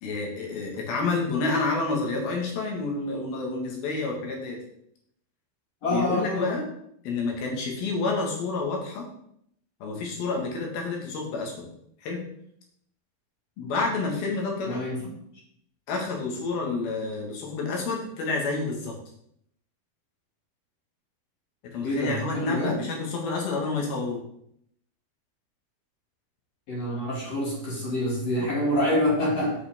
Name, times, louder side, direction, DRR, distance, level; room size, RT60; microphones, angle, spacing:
voice 1, 0.0-4.6 5.9-6.6 7.1-9.1 9.8-11.7 12.0-12.2 13.6-14.8 15.9-18.9 21.7-24.2, left 3 dB, 75° left, 0 dB, 3.6 m, -29 dB
voice 2, 5.8-6.6 14.6-15.0 21.8-22.8 26.7-29.5, left 1 dB, 45° left, -4 dB, 3.2 m, -26 dB
8.1 x 7.9 x 3.6 m, 0.72 s
omnidirectional pair, 4.4 m